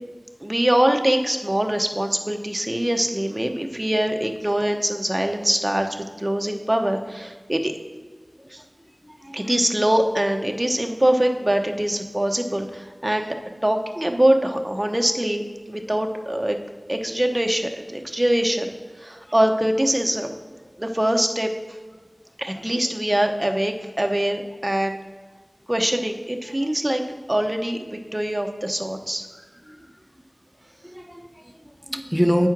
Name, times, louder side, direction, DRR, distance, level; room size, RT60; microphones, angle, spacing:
voice 1, 0.4-7.7 8.5-8.6 9.3-13.4 13.6-16.6 16.9-18.7 19.0-20.4 20.8-21.5 22.4-25.0 25.7-27.0 27.3-29.3, right 1 dB, 25° right, 4 dB, 0.9 m, -23 dB
voice 2, 9.0-9.4 15.9-16.0 29.7-29.9 30.8-32.5, equal, ahead, 6 dB, 0.8 m, -26 dB
8.7 x 4.4 x 5.9 m, 1.5 s
wide cardioid pair, 40°, 0 cm